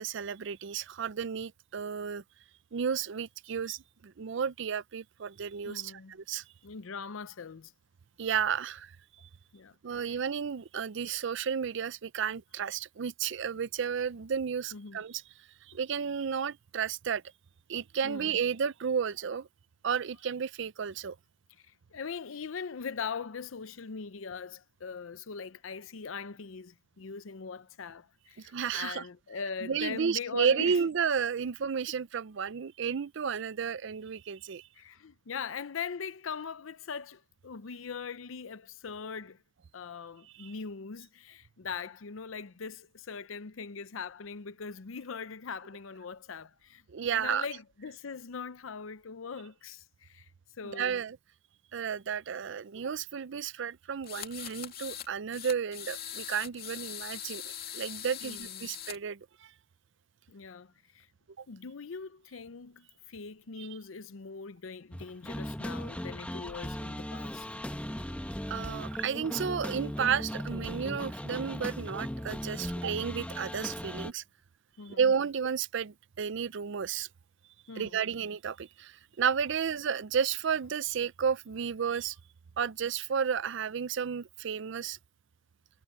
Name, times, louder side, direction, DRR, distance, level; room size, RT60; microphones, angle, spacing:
voice 1, 0.0-2.2 2.7-6.4 8.2-8.9 9.2-9.3 9.8-15.2 15.7-17.2 17.7-19.5 19.8-21.2 28.4-29.0 29.6-34.7 40.4-40.5 46.9-47.4 50.7-51.2 51.7-59.5 61.4-61.5 63.6-63.7 68.5-74.2 74.9-77.1 77.8-82.2 82.6-85.0, right 7 dB, 65° right, 0.5 m, -32 dB
voice 2, 5.6-6.2 6.6-7.7 9.5-10.2 14.7-15.0 18.0-18.4 21.6-30.9 31.8-31.9 34.8-39.4 39.7-46.8 47.1-51.1 58.2-58.8 60.3-61.1 61.5-67.5 74.8-75.1 77.7-78.0, left 5 dB, 80° left, 0.6 m, -41 dB
sound 1, 54.0-55.1 55.3-59.0, left 10 dB, 50° left, 2.6 m, -41 dB
sound 2, 64.9-74.1, equal, 5° left, 1.1 m, -38 dB
head